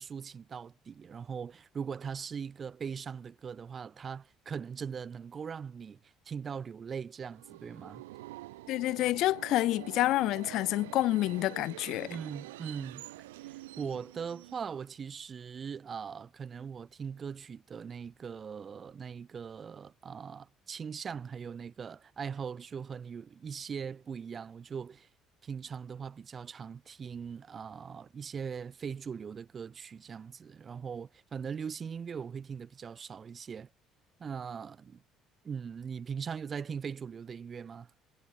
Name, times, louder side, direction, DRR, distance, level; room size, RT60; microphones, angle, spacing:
voice 1, 0.0-8.0 12.1-13.1 13.4-25.1 25.4-33.7 34.2-35.0 35.4-37.9, right 6 dB, 40° right, 2.2 m, -40 dB
Subway metro underground, 7.2-15.0, right 18 dB, 75° right, 2.2 m, -47 dB
voice 2, 8.7-12.1, left 16 dB, 60° left, 0.6 m, -28 dB
figure-of-eight pair, 55°, 0 cm